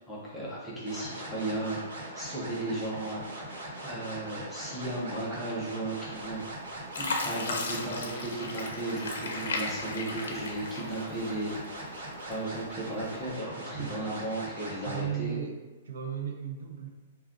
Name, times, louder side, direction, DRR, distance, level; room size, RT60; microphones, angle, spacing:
voice 1, 0.1-6.4 7.0-15.4, right 2 dB, 5° left, -7 dB, 0.5 m, -35 dB
sound 1, 0.9-15.0, right 1 dB, 90° right, 1.0 m, -41 dB
Fill (with liquid), 6.2-6.5 6.9-11.3 11.8-12.6 13.1-13.3, left 3 dB, 90° left, 0.5 m, -35 dB
voice 2, 14.8-15.6 15.8-16.9, right 8 dB, 60° right, 3 dB, 0.4 m, -35 dB
2.4 x 2.2 x 3.5 m, 1.2 s
hypercardioid pair, 175°, 0 cm